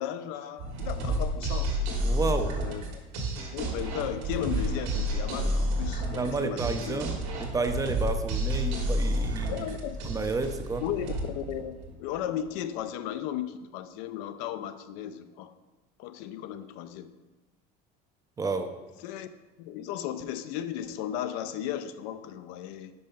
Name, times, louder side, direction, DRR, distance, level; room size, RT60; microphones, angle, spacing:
voice 1, 0.0-1.8 2.5-3.0 3.5-7.1 9.5-10.0 10.8-11.1 11.3-15.5 16.0-17.1 19.0-19.3 19.6-22.9, left 10 dB, 75° left, 11 dB, 0.5 m, -35 dB
sound 1, 0.6-12.2, equal, 75° right, 1.5 m, -30 dB
voice 2, 2.0-2.6 6.1-9.6 10.0-10.8 18.4-18.7, right 3 dB, 15° right, 7 dB, 0.4 m, -31 dB
5.4 x 4.4 x 5.4 m, 1.1 s
cardioid pair, 135°, 20 cm